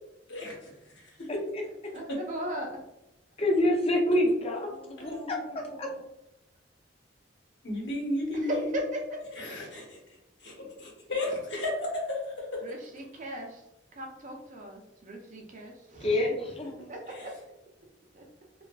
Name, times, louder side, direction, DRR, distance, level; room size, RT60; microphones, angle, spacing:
voice 1, 0.3-1.3 5.0-5.2 7.6-8.7 9.4-10.0 10.4-12.6 17.1-17.3, left 1 dB, 70° left, -2 dB, 1.0 m, -34 dB
voice 2, 1.9-2.8 8.3-9.6 12.6-13.6 14.0-16.5 16.9-17.4 18.1-18.3, equal, 45° right, 1 dB, 0.5 m, -37 dB
voice 3, 3.4-6.0 16.0-16.9, left 1 dB, 35° left, 1 dB, 0.5 m, -27 dB
2.6 x 2.3 x 2.3 m, 0.90 s
head